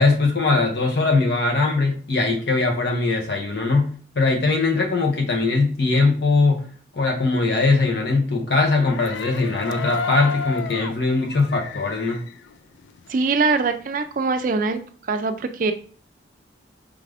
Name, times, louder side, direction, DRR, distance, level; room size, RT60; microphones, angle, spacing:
voice 1, 0.0-3.9 4.2-6.6 6.9-12.2, left 3 dB, 60° left, 2 dB, 0.7 m, -20 dB
sound 1, 8.8-13.4 13.7-14.8, left 6 dB, 80° left, 0.3 m, -33 dB
voice 2, 13.1-14.8 15.1-15.7, right 4 dB, 45° right, 9 dB, 0.4 m, -22 dB
4.9 x 2.4 x 3.3 m, 0.44 s
head